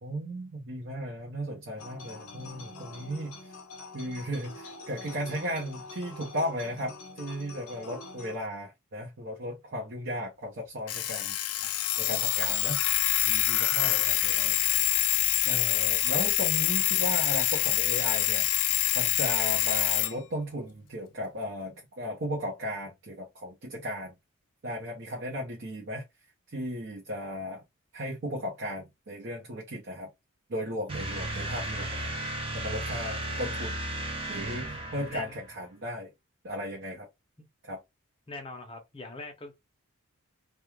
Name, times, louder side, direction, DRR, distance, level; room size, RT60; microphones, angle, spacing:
voice 1, 0.0-3.5 3.9-11.4 12.0-12.8 13.3-14.6 15.1-18.5 18.9-24.1 24.6-26.0 26.5-27.6 27.9-30.1 30.5-32.1 32.5-33.8 34.3-36.1 36.4-37.1 37.6-37.8, equal, 55° right, 0.7 m, -36 dB
sound 1, 1.8-8.4, left 3 dB, 70° left, 0.7 m, -45 dB
Alarm, 10.9-20.1, left 15 dB, 90° left, 0.4 m, -26 dB
sound 2, 30.9-35.6, right 1 dB, 25° right, 0.5 m, -34 dB
voice 2, 38.3-39.5, left 2 dB, 25° left, 0.6 m, -42 dB
2.3 x 2.2 x 3.0 m
head